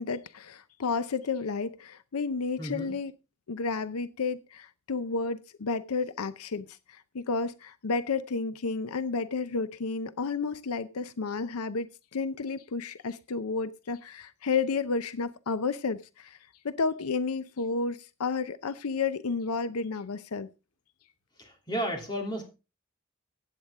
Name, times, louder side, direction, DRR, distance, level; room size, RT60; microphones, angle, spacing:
voice 1, 0.0-3.1 3.5-16.4 16.6-20.5, left 4 dB, 85° left, 13 dB, 0.6 m, -31 dB
voice 2, 2.6-2.9 21.4-22.4, equal, 20° left, 1 dB, 3.0 m, -33 dB
15.5 x 8.9 x 3.6 m, 0.30 s
head